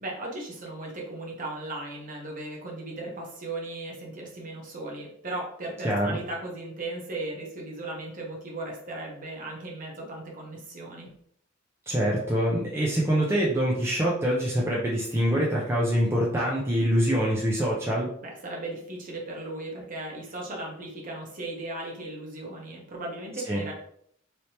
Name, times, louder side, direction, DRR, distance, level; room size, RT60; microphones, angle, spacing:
voice 1, 0.0-11.1 18.2-23.7, right 2 dB, 40° right, -2 dB, 0.9 m, -37 dB
voice 2, 5.8-6.2 11.9-18.1 23.5-23.6, equal, 10° right, -5 dB, 0.5 m, -25 dB
3.2 x 2.9 x 2.8 m, 0.68 s
head